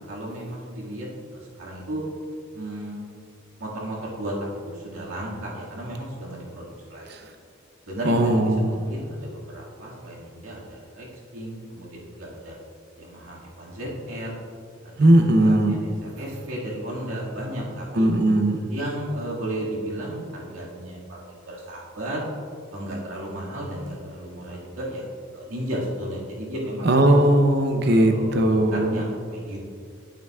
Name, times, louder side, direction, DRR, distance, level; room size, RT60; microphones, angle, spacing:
voice 1, 0.1-1.1 1.3-2.0 2.5-3.0 3.6-4.3 4.7-7.0 7.9-11.1 11.3-12.6 13.0-14.4 14.8-18.1 18.7-22.2 22.7-25.0 25.3-27.3 27.8-29.6, right 1 dB, 90° right, -5 dB, 2.0 m, -34 dB
voice 2, 8.0-8.7 15.0-15.8 17.9-18.6 26.8-29.0, right 1 dB, 55° right, 5 dB, 0.8 m, -18 dB
9.2 x 8.9 x 2.4 m, 2.2 s
head